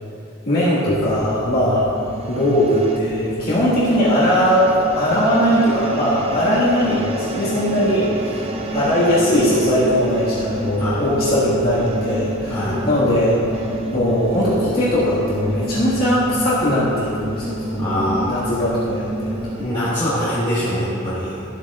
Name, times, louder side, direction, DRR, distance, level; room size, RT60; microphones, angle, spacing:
voice 1, 0.4-1.9 2.3-13.4 13.9-19.4, equal, 45° left, -10 dB, 1.8 m, -19 dB
sound 1, 0.9-19.7, right 1 dB, 25° right, 0.6 m, -29 dB
voice 2, 12.5-12.8 17.7-18.4 19.6-21.4, equal, 20° left, -12 dB, 1.6 m, -23 dB
13.0 x 8.2 x 2.5 m, 2.7 s
head